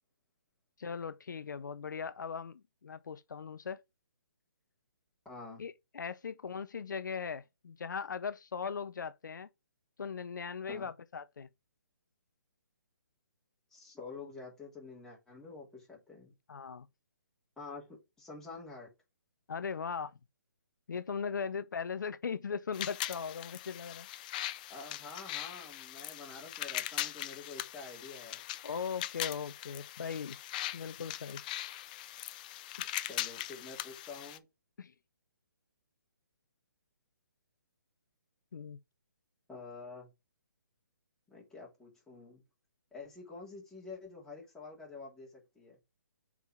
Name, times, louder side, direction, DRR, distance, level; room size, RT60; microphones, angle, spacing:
voice 1, 0.8-3.8 5.6-9.5 10.0-11.5 16.5-16.9 19.5-20.2 20.9-24.1 28.6-30.4 30.7-31.4 32.8-32.9 34.8-34.9 38.5-38.8, left 6 dB, 75° left, 0.6 m, -39 dB
voice 2, 5.2-5.6 10.7-10.9 13.7-16.3 17.6-18.9 24.7-28.4 32.9-34.4 39.5-40.1 41.3-42.4 42.9-45.8, left 3 dB, 5° left, 3.0 m, -48 dB
sound 1, 22.7-34.4, left 14 dB, 25° left, 0.4 m, -40 dB
5.4 x 4.8 x 5.8 m
hypercardioid pair, 150°, 10 cm